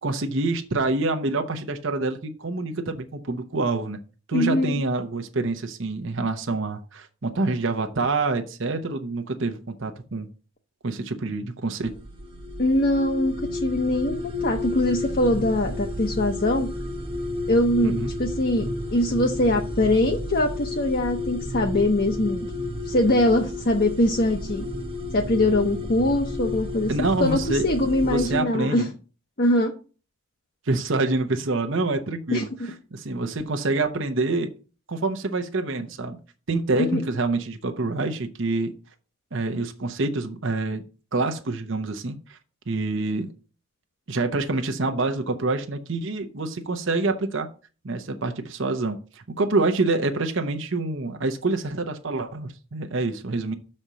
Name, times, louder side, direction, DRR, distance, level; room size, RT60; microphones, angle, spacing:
voice 1, 0.0-4.0 4.3-10.3 10.8-11.9 17.8-18.1 26.9-27.6 28.0-28.9 30.7-32.5 32.9-34.5 34.9-36.2 36.5-38.7 39.3-40.8 41.1-42.4 42.7-43.3 44.1-47.5 47.8-53.5, right 3 dB, 60° right, 5 dB, 0.8 m, -26 dB
voice 2, 4.3-4.8 12.6-16.7 17.5-22.5 22.8-24.7 25.1-26.9 27.2-28.9 29.4-29.7 32.3-32.4 36.8-37.0, left 1 dB, 45° left, 3 dB, 0.8 m, -22 dB
sound 1, 11.8-28.4, left 1 dB, 25° right, 1.1 m, -32 dB
6.7 x 4.3 x 6.2 m, 0.36 s
head